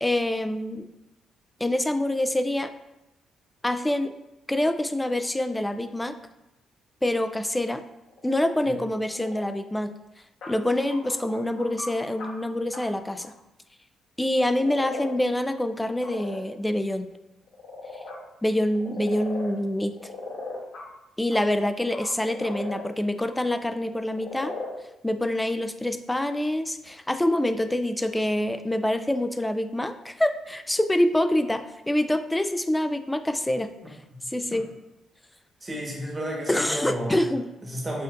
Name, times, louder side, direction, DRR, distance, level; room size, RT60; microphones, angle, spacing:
voice 1, 0.0-0.9 1.6-2.7 3.6-4.1 4.5-6.2 7.0-7.8 8.2-9.9 10.5-13.3 14.2-17.1 18.4-19.9 21.2-24.5 25.0-33.7 34.3-34.6 36.5-37.4, left 1 dB, 10° left, 9 dB, 0.3 m, -26 dB
sound 1, 8.1-8.5 9.0-9.4 10.4-12.3 12.7-12.8 13.2-13.3 14.3-15.1 15.7-16.4 17.5-18.2 18.7-19.5 19.8-20.8 21.3-21.4 21.9-23.6 24.0-24.7 25.4-25.5, left 3 dB, 75° left, 1.1 m, -38 dB
voice 2, 35.6-37.2 37.6-38.0, equal, 20° right, -2 dB, 1.3 m, -32 dB
6.4 x 2.6 x 2.5 m, 0.92 s
cardioid pair, 90°, 0 cm